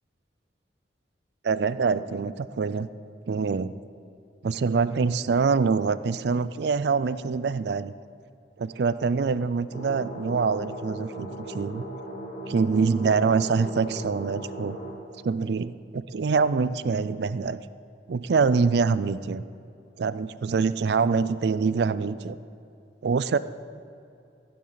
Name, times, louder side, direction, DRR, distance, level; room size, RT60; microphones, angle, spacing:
voice 1, 1.4-2.9 3.3-3.7 4.4-7.9 8.6-11.8 12.5-14.8 15.2-17.6 18.1-19.4 20.0-22.4 23.0-23.4, right 5 dB, 65° right, 15 dB, 0.4 m, -25 dB
sound 1, 9.7-14.9, right 1 dB, 80° left, 2.7 m, -38 dB
16.0 x 9.3 x 4.0 m, 2.6 s
head